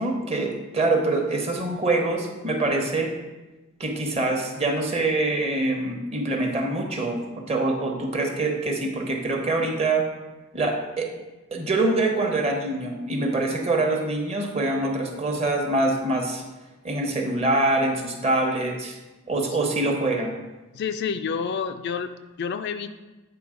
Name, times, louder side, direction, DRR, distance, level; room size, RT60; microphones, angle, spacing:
voice 1, 0.0-3.1 3.8-10.0 10.5-11.1 11.5-16.4 16.8-19.0 19.3-20.3, right 2 dB, 30° right, 2 dB, 0.9 m, -25 dB
voice 2, 20.7-22.1 22.4-22.9, left 6 dB, 50° left, 8 dB, 0.3 m, -29 dB
8.6 x 3.7 x 5.0 m, 1.1 s
head